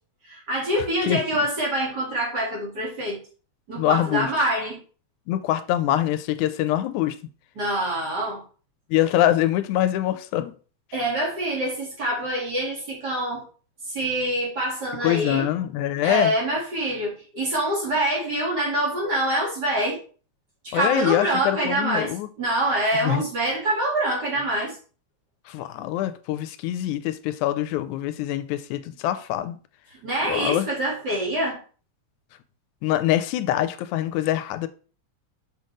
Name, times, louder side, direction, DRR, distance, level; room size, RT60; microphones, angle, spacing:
voice 1, 0.3-3.2 3.7-4.8 7.6-8.4 10.9-13.4 13.9-15.5 16.0-20.0 20.6-24.8 30.0-31.6, right 1 dB, 40° right, 2.2 m, -25 dB
voice 2, 3.8-4.3 5.3-7.2 8.9-10.5 15.0-16.3 20.7-22.3 23.0-23.2 25.5-29.6 30.3-30.7 32.8-34.7, left 13 dB, 85° left, 2.0 m, -24 dB
6.1 x 5.8 x 3.1 m
omnidirectional pair, 3.4 m